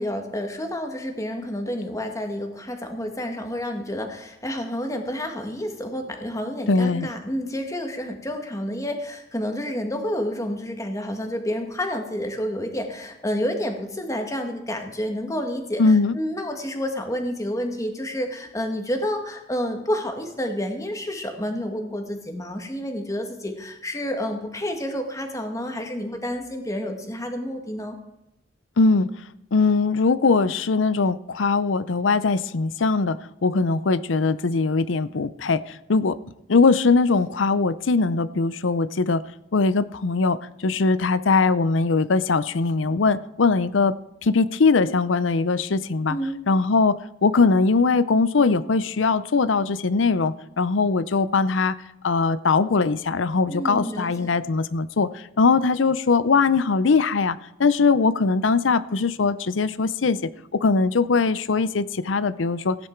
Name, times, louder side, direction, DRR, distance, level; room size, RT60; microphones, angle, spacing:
voice 1, 0.0-15.8 16.1-28.0 46.1-46.4 53.5-54.3, equal, 15° left, 4 dB, 1.7 m, -29 dB
voice 2, 6.7-7.1 15.8-16.2 28.8-29.1 29.5-36.2 36.5-39.2 39.5-43.9 44.2-46.2 46.5-51.8 52.0-62.8, left 4 dB, 85° left, 16 dB, 0.6 m, -21 dB
16.0 x 9.8 x 4.5 m, 0.87 s
head